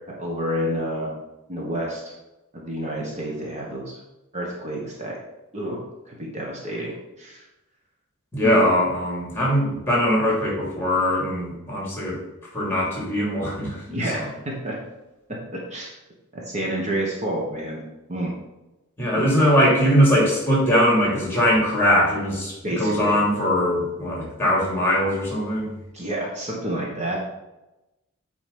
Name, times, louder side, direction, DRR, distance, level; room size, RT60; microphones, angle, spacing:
voice 1, 0.2-1.1 1.5-2.1 2.5-4.0 4.3-5.1 5.5-5.8 6.0-7.4 8.4-8.6 13.9-14.8 15.5-15.9 16.3-17.8 18.1-18.3 19.1-19.3 22.6-23.2 25.9-27.2, right 1 dB, 35° right, -2 dB, 1.3 m, -29 dB
voice 2, 8.3-12.2 12.5-13.8 14.1-14.2 19.0-25.7, equal, 10° left, -4 dB, 2.9 m, -21 dB
8.7 x 4.1 x 5.3 m, 0.98 s
head